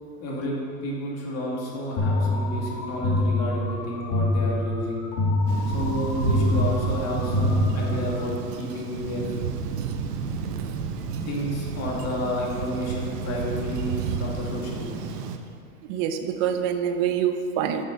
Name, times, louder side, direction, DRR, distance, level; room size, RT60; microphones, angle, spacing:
voice 1, 0.2-5.0 5.7-9.2 11.2-15.1, left 1 dB, 35° left, -3 dB, 2.2 m, -31 dB
sound 1, 2.0-8.3, left 2 dB, 55° left, 2.4 m, -26 dB
Thunder, 5.5-15.4, right 6 dB, 85° right, 0.9 m, -30 dB
voice 2, 15.9-17.9, right 8 dB, 40° right, 7 dB, 0.7 m, -25 dB
7.4 x 7.0 x 5.4 m, 2.4 s
supercardioid pair, 130°, 46 cm